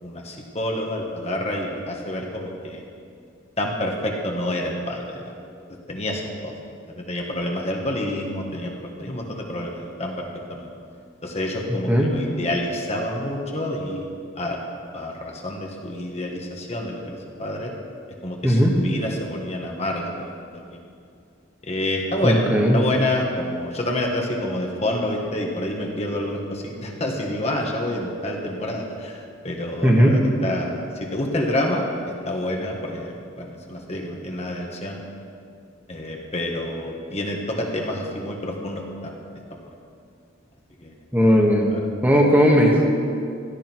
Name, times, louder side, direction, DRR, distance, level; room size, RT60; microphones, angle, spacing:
voice 1, 0.0-2.8 3.6-5.3 5.9-6.5 6.9-10.7 11.2-14.1 14.4-14.6 14.9-17.7 18.2-20.8 21.6-22.4 22.7-31.9 32.3-35.0 35.9-39.2 39.5-39.7 40.8-40.9, left 1 dB, 30° left, 0 dB, 1.6 m, -28 dB
voice 2, 18.4-18.8 22.2-22.8 29.8-30.2 41.1-41.7 42.0-42.8, equal, 10° right, -2 dB, 1.6 m, -17 dB
16.5 x 13.5 x 4.6 m, 2.4 s
head